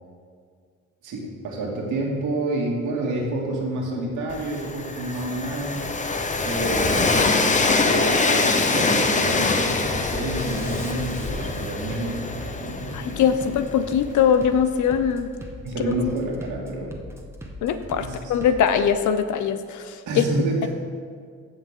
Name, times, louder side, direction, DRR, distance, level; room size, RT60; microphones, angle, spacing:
voice 1, 1.0-6.0 6.4-13.6 15.6-17.0 18.0-18.3 20.1-20.7, right 2 dB, 75° right, -2 dB, 2.3 m, -29 dB
Bass drum, 3.2-3.3 3.8-4.3 5.1-5.3 5.8-6.3 7.1-7.3 7.8-8.3 8.7-18.9, equal, 10° right, 1.1 m, -41 dB
Train, 4.3-14.1, left 3 dB, 25° left, 0.8 m, -24 dB
voice 2, 12.9-15.3 17.6-20.3, left 8 dB, 75° left, 10 dB, 0.7 m, -22 dB
15.0 x 5.6 x 3.8 m, 2.1 s
cardioid pair, 90°, 30 cm